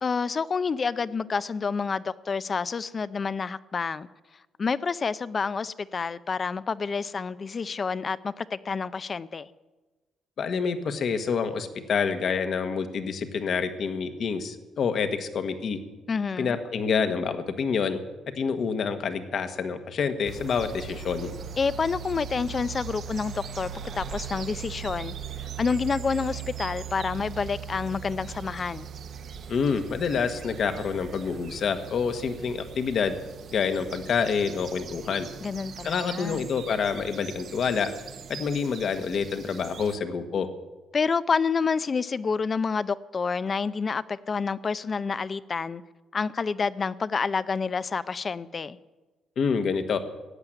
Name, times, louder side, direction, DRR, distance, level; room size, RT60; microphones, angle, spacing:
voice 1, 0.0-4.1 4.6-9.5 16.1-16.6 21.6-25.1 25.6-28.9 35.4-36.4 40.9-45.8 46.1-48.8, left 5 dB, 40° left, 0.6 m, -28 dB
voice 2, 10.4-15.8 16.4-18.0 18.3-21.3 29.5-33.1 33.5-35.3 35.8-37.9 38.3-40.5 49.4-50.0, left 6 dB, 60° left, 1.5 m, -27 dB
sound 1, 20.3-40.0, right 7 dB, 60° right, 1.2 m, -40 dB
15.0 x 8.7 x 9.1 m
cardioid pair, 90°, 0 cm